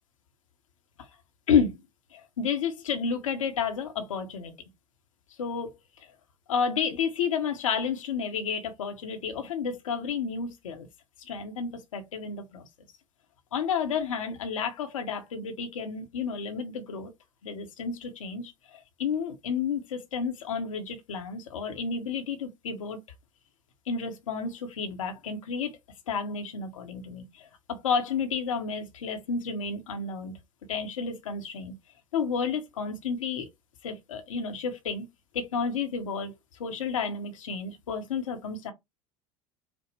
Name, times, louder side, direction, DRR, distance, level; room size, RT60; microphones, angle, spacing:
voice 1, 1.5-1.8 2.1-4.5 5.4-5.7 6.5-10.9 11.2-12.6 13.5-17.1 17.4-23.0 23.9-25.8 26.1-30.4 30.7-31.8 32.1-33.5 33.8-35.1 35.3-36.3 36.6-38.7, left 6 dB, 70° left, 0.9 m, -31 dB
5.1 x 2.1 x 3.2 m
figure-of-eight pair, 75°, 17 cm